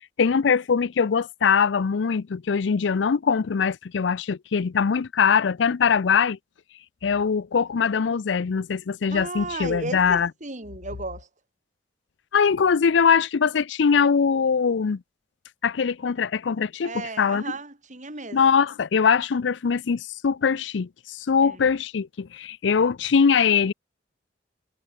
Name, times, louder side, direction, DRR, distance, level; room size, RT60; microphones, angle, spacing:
voice 1, 0.2-6.4 7.0-10.3 12.3-15.0 15.6-17.4 18.3-23.7, left 6 dB, 75° left, 0.5 m, -22 dB
voice 2, 9.1-11.3 16.8-18.4 21.4-21.7, right 3 dB, 40° right, 4.3 m, -35 dB
head